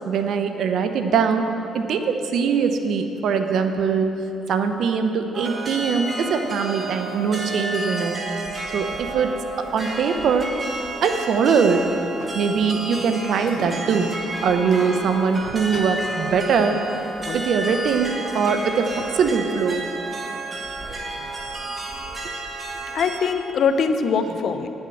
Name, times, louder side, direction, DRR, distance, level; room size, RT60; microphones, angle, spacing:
voice 1, 0.1-1.5 1.7-4.1 4.5-8.2 8.7-10.6 11.0-11.9 12.3-16.8 17.3-19.8, right 5 dB, 70° right, 7 dB, 0.8 m, -22 dB
sound 1, 5.3-23.2, right 2 dB, 35° right, 1.6 m, -31 dB
voice 2, 22.9-24.7, left 5 dB, 65° left, 8 dB, 0.7 m, -23 dB
9.8 x 7.2 x 7.7 m, 2.9 s
cardioid pair, 90°, 0 cm